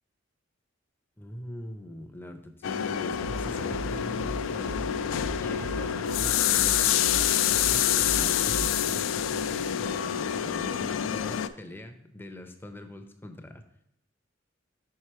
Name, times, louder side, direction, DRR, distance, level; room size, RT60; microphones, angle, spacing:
voice 1, 1.2-5.0 5.4-13.6, left 1 dB, 10° left, 7 dB, 0.5 m, -43 dB
sound 1, 2.6-11.5, left 10 dB, 85° left, 0.3 m, -27 dB
sound 2, 3.1-9.0, right 1 dB, 75° right, 0.5 m, -38 dB
5.5 x 4.7 x 4.4 m, 0.81 s
head